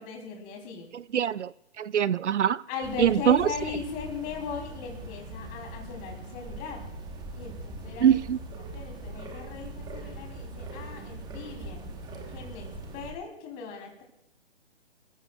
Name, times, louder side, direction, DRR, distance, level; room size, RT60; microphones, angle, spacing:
voice 1, 0.0-0.9 2.7-6.9 7.3-8.2 8.7-11.8 12.3-14.0, left 5 dB, 25° left, 2 dB, 3.2 m, -38 dB
voice 2, 0.9-2.6 3.0-3.5 8.0-8.4, right 9 dB, 80° right, 20 dB, 0.5 m, -23 dB
sound 1, 2.8-13.1, right 2 dB, 10° right, 1.2 m, -41 dB
26.5 x 15.0 x 2.3 m, 0.78 s
figure-of-eight pair, 140°, 35 cm